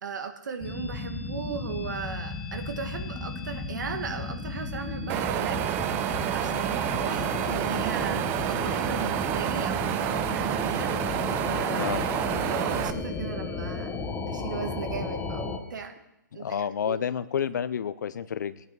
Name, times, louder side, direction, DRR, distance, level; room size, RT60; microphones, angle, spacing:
voice 1, 0.0-10.9 11.5-11.9 12.4-14.0 14.3-16.0 16.3-17.0, right 5 dB, 65° right, 7 dB, 1.8 m, -37 dB
sound 1, 0.6-15.6, left 4 dB, 10° left, 1.2 m, -34 dB
Wind, 5.1-12.9, right 12 dB, 20° right, 0.4 m, -29 dB
voice 2, 16.3-18.6, left 8 dB, 65° left, 15 dB, 0.7 m, -30 dB
19.0 x 9.4 x 4.0 m, 0.91 s
hypercardioid pair, 150°, 11 cm